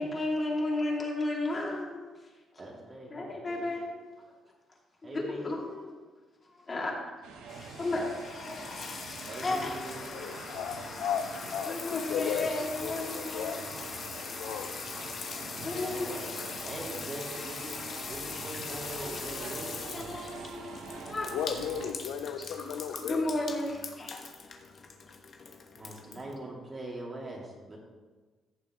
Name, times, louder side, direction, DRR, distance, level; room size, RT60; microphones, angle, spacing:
voice 1, 0.0-2.2 3.1-4.0 5.1-5.9 6.5-7.1 7.6-8.1 8.4-8.6 9.4-9.8 11.7-13.7 14.0-14.3 15.5-16.4 17.3-17.4 19.7-21.3 23.0-24.2, left 2 dB, 35° left, -2 dB, 2.6 m, -34 dB
voice 2, 2.6-3.6 5.0-5.5 9.2-10.0 15.6-17.8 18.0-19.9 25.7-27.8, right 2 dB, 35° right, -2 dB, 2.7 m, -42 dB
sound 1, 7.2-21.9, right 5 dB, 90° right, 0.9 m, -45 dB
sound 2, 7.5-26.3, left 5 dB, 50° left, 1.2 m, -41 dB
voice 3, 10.1-13.7 14.2-14.7 21.3-23.3, left 7 dB, 85° left, 9 dB, 0.6 m, -35 dB
15.0 x 6.9 x 3.1 m, 1.4 s
cardioid pair, 80°, 0 cm